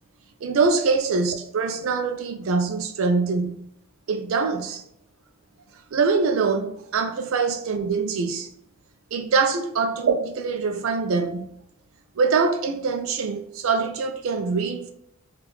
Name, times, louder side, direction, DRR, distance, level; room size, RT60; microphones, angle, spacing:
voice 1, 0.4-3.6 4.1-4.8 5.9-8.5 9.1-11.5 12.2-14.9, right 4 dB, 80° right, 0.4 m, -24 dB
3.5 x 2.4 x 3.0 m
head